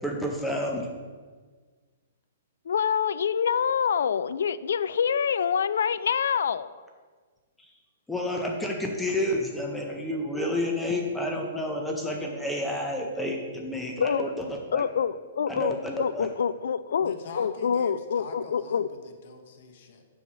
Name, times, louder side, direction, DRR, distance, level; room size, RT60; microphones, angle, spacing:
voice 1, 0.0-0.9 8.1-14.8 15.5-16.3, left 1 dB, 5° left, 1 dB, 0.6 m, -30 dB
voice 2, 2.7-6.7 14.0-14.3 14.7-18.9, left 7 dB, 80° left, 16 dB, 0.3 m, -26 dB
voice 3, 17.0-20.1, left 4 dB, 55° left, 5 dB, 1.0 m, -43 dB
5.3 x 4.6 x 6.1 m, 1.5 s
hypercardioid pair, 155°, 0 cm